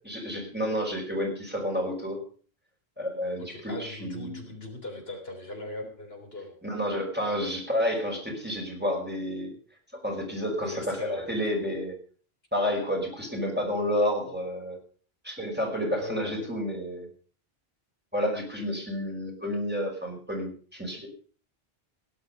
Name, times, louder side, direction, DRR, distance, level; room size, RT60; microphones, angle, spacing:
voice 1, 0.0-2.2 3.0-4.4 6.6-9.6 9.9-12.0 12.5-14.8 15.2-17.1 18.1-21.1, equal, 10° right, -1 dB, 5.4 m, -30 dB
voice 2, 3.4-6.6 10.6-11.3 16.0-16.5, left 2 dB, 70° left, 2 dB, 3.9 m, -39 dB
17.5 x 11.0 x 5.3 m, 0.43 s
omnidirectional pair, 1.1 m